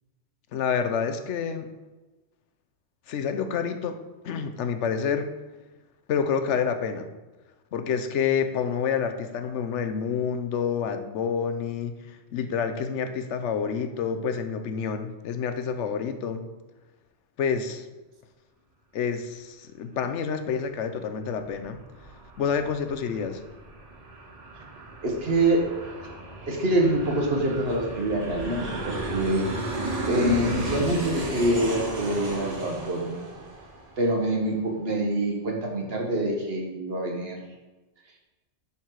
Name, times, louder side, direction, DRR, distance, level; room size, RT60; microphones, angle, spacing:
voice 1, 0.5-1.7 3.1-4.0 4.2-5.3 6.1-7.1 7.7-16.4 17.4-17.9 18.9-21.8 22.4-23.4, left 6 dB, 80° left, 8 dB, 1.0 m, -28 dB
Aircraft, 21.2-34.4, right 2 dB, 35° right, 1.5 m, -34 dB
voice 2, 25.0-25.6 26.5-29.4 30.1-33.2 34.0-37.4, right 1 dB, 60° right, 1 dB, 1.5 m, -25 dB
10.5 x 4.4 x 4.6 m, 1.2 s
omnidirectional pair, 1.2 m